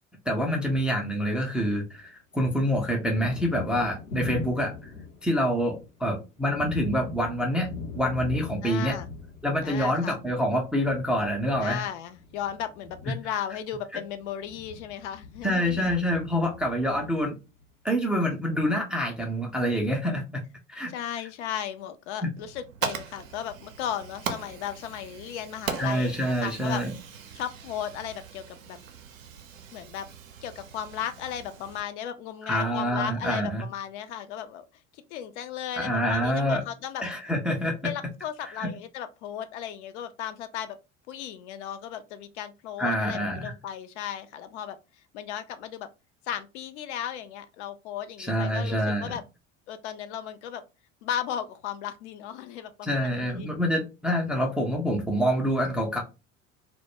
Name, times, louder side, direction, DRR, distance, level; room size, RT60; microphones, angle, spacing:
voice 1, 0.3-4.7 5.2-7.7 7.9-9.0 9.4-11.9 13.9-14.0 15.4-17.4 17.8-20.4 20.7-20.9 22.2-22.3 25.8-26.9 32.4-33.6 35.8-36.6 37.0-37.9 38.6-38.7 42.8-43.5 48.2-49.2 52.8-56.0, equal, 5° right, 0.3 m, -26 dB
Thunder, 1.0-2.1 2.4-17.6, left 4 dB, 90° left, 0.8 m, -41 dB
voice 2, 8.6-9.1 9.6-10.2 11.6-15.9 20.9-26.8 27.3-28.8 29.7-30.1 30.4-34.7 34.9-37.0 37.8-40.8 41.1-44.8 45.1-45.9 46.3-49.2 49.7-50.6 51.0-53.5, left 9 dB, 60° left, 0.5 m, -35 dB
Fire, 22.4-31.8, right 7 dB, 80° right, 0.5 m, -39 dB
2.1 x 2.1 x 2.8 m
figure-of-eight pair, 70°, 39 cm